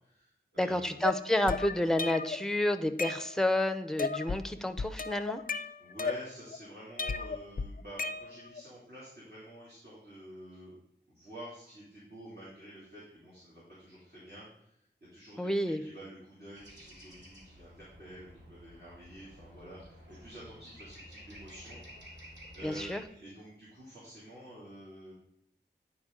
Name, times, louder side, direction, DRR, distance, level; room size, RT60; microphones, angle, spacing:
voice 1, 0.0-1.0 5.8-10.8 11.1-14.7 15.1-15.5 15.8-25.1, right 1 dB, 60° right, -8 dB, 2.6 m, -49 dB
voice 2, 0.6-5.4 15.4-15.8 22.6-23.0, left 1 dB, 5° left, 9 dB, 0.5 m, -30 dB
sound 1, 1.0-2.4 2.8-3.6 4.0-4.5 4.8-6.6 7.0-8.6, left 4 dB, 50° left, 0.4 m, -35 dB
sound 2, 16.5-23.1, equal, 80° right, 2.4 m, -52 dB
9.5 x 4.5 x 3.7 m, 0.75 s
wide cardioid pair, 60°, 18 cm